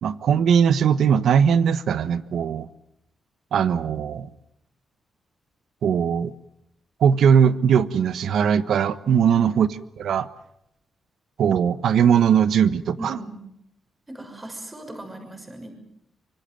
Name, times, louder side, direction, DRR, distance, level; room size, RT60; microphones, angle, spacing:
voice 1, 0.0-2.7 3.5-4.3 5.8-6.3 7.0-9.7 10.0-10.3 11.4-13.2, right 7 dB, 80° right, 14 dB, 1.2 m, -19 dB
voice 2, 13.0-13.4 14.1-15.7, right 1 dB, 15° right, 5 dB, 6.4 m, -37 dB
25.0 x 24.5 x 7.8 m, 0.78 s
cardioid pair, 105°, 0 cm